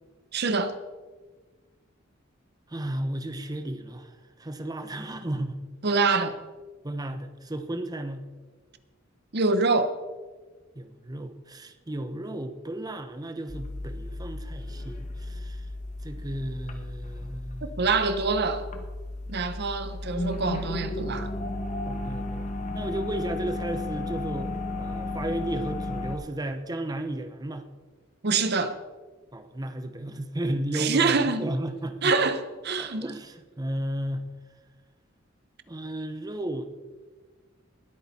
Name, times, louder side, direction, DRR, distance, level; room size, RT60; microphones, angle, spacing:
voice 1, 0.3-0.7 5.8-6.4 9.3-10.0 17.6-18.7 19.3-21.3 28.2-28.8 30.7-31.5 32.0-33.1, right 4 dB, 55° right, 0.8 m, -25 dB
voice 2, 2.7-5.6 6.8-8.3 10.7-15.7 16.0-17.9 21.8-22.5 22.7-27.7 29.3-32.2 32.8-34.3 35.7-36.7, right 1 dB, 20° right, 0.7 m, -34 dB
sound 1, 13.5-26.2, left 2 dB, 40° left, 1.4 m, -34 dB
20.0 x 8.7 x 4.2 m
head